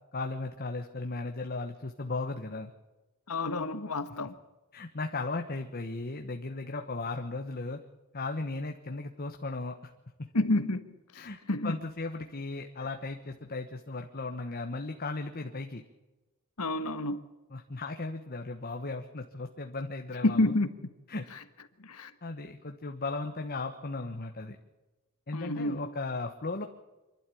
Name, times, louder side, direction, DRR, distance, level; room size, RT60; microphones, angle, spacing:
voice 1, 0.1-2.7 4.7-7.8 8.1-9.8 10.2-10.3 11.2-11.4 11.6-15.8 17.5-20.5 21.1-21.2 22.2-24.6 25.3-26.6, left 3 dB, 45° left, 1.3 m, -36 dB
voice 2, 3.3-4.4 10.3-11.7 16.6-17.2 20.2-20.9 21.3-21.4 21.8-22.1 25.3-25.9, left 2 dB, 90° left, 1.5 m, -29 dB
27.0 x 12.5 x 8.5 m
head